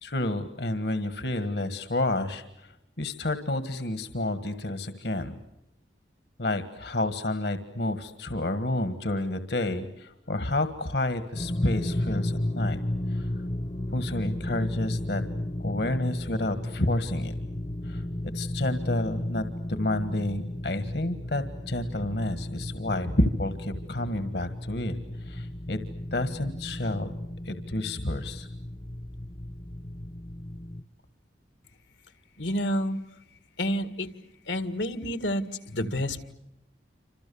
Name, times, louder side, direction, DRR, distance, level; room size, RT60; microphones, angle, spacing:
voice 1, 0.0-5.4 6.4-12.8 13.1-13.3 13.9-15.2 15.6-17.3 17.8-18.0 18.3-25.8 26.1-27.1 27.5-28.5, left 1 dB, 65° left, 11 dB, 1.7 m, -30 dB
sound 1, 11.3-30.8, left 1 dB, 30° left, 0.9 m, -34 dB
voice 2, 32.4-33.0 33.6-34.1 34.5-36.3, equal, 80° left, 12 dB, 2.0 m, -29 dB
29.0 x 27.0 x 7.0 m, 0.85 s
head